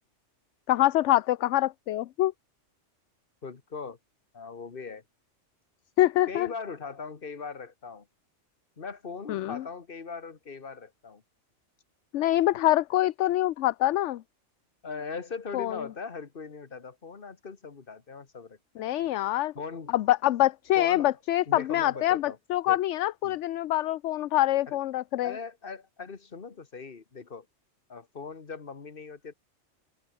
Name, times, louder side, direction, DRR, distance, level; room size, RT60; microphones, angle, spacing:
voice 1, 0.7-2.3 6.0-6.5 9.3-9.6 12.1-14.2 15.5-15.7 18.8-19.5 19.9-25.3, left 14 dB, 75° left, 0.9 m, -25 dB
voice 2, 3.4-4.0 4.3-5.0 6.3-8.1 8.8-11.2 14.8-18.9 19.6-19.9 20.8-21.1 21.5-22.4 22.7-22.8 23.2-23.4 24.7-24.8 25.2-27.5 27.9-29.3, left 5 dB, 45° left, 1.8 m, -39 dB
open air
omnidirectional pair, 1.3 m